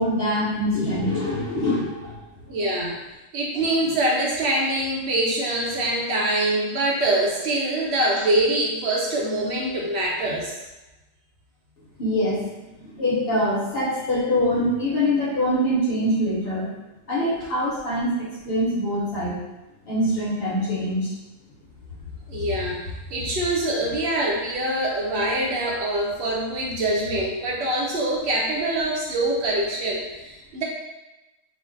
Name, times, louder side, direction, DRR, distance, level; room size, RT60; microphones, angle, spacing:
voice 1, 0.0-2.2 12.0-12.4 12.8-16.7 17.1-19.4 19.9-21.1, equal, 55° left, -6 dB, 0.9 m, -24 dB
voice 2, 2.5-3.0 3.3-10.6 22.3-22.8 23.1-30.6, right 1 dB, 65° right, -3 dB, 0.9 m, -24 dB
2.5 x 2.1 x 3.7 m, 1.0 s
omnidirectional pair, 1.3 m